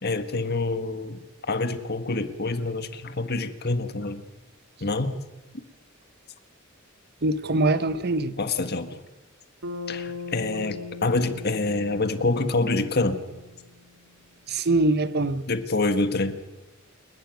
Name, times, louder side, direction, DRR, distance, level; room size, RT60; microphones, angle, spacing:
voice 1, 0.0-4.2 4.8-5.2 8.4-9.0 9.9-13.2 15.5-16.4, left 2 dB, 50° left, 1.7 m, -26 dB
voice 2, 7.2-8.4 14.5-15.4, right 2 dB, 50° right, 1.0 m, -23 dB
Bass guitar, 9.6-14.0, left 4 dB, 85° right, 2.3 m, -39 dB
29.0 x 12.0 x 9.3 m
head